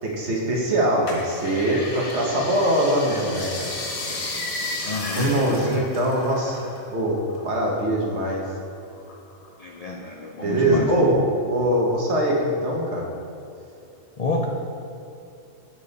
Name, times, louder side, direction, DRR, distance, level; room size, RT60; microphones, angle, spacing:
voice 1, 0.0-3.7 5.1-6.6 6.9-8.4 10.4-13.1, right 1 dB, 55° right, -2 dB, 1.4 m, -22 dB
sound 1, 1.1-6.9 7.2-8.5 8.9-9.8 10.2-10.3, left 2 dB, 90° left, 1.6 m, -33 dB
voice 2, 4.8-5.3 9.6-11.1 14.2-14.4, left 2 dB, 50° left, 0 dB, 0.4 m, -28 dB
7.4 x 6.7 x 4.1 m, 2.6 s
omnidirectional pair, 1.4 m